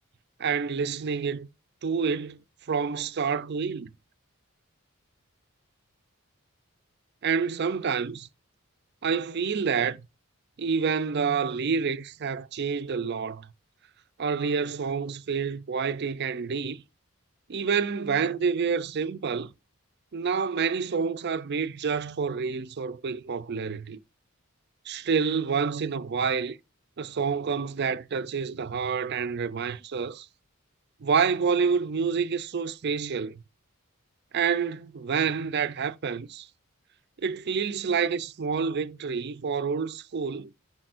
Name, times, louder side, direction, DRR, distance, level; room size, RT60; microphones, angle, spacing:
voice 1, 0.4-1.5 1.8-2.4 2.7-3.9 7.2-8.3 9.0-10.0 10.6-13.5 14.2-16.8 17.5-19.5 20.1-24.0 24.9-26.6 27.0-30.3 31.0-33.4 34.3-36.5 37.2-40.5, right 6 dB, 50° right, 0.4 m, -28 dB
10.0 x 4.1 x 2.5 m
head